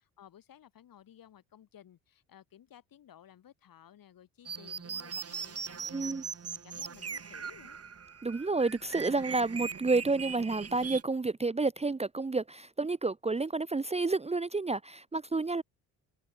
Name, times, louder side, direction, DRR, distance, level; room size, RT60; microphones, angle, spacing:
voice 1, 0.2-7.8, left 10 dB, 55° left, 6.1 m, -57 dB
sound 1, 4.4-11.0, right 6 dB, 35° right, 4.3 m, -40 dB
voice 2, 5.9-6.2 8.2-15.6, right 3 dB, 15° right, 1.0 m, -30 dB
hypercardioid pair, 65°, 41 cm